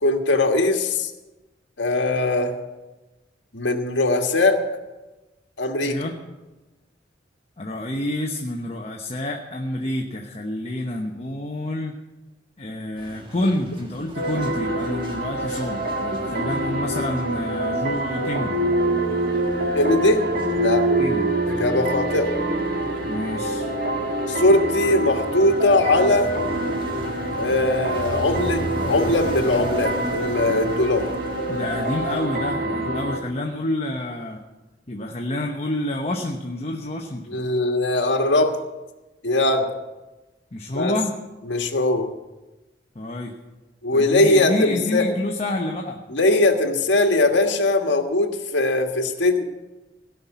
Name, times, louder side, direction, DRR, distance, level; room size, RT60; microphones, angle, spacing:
voice 1, 0.0-1.1 1.8-2.5 3.5-4.6 5.6-6.0 19.7-20.2 20.5-20.9 21.5-22.3 24.3-26.3 27.4-31.1 37.3-38.6 39.2-39.7 40.7-41.0 41.5-42.1 43.8-45.1 46.1-49.4, left 2 dB, 80° left, 4 dB, 1.6 m, -20 dB
voice 2, 5.8-6.1 7.6-11.9 12.6-18.6 21.0-21.3 23.0-23.7 31.5-34.4 34.9-37.4 40.5-41.1 42.9-43.3 43.9-46.0, left 1 dB, 35° left, 1 dB, 1.0 m, -28 dB
sound 1, 13.0-32.3, right 1 dB, 30° right, 1.7 m, -38 dB
sound 2, 14.1-33.2, right 1 dB, 55° right, 1.8 m, -26 dB
17.0 x 5.8 x 9.3 m, 1.1 s
head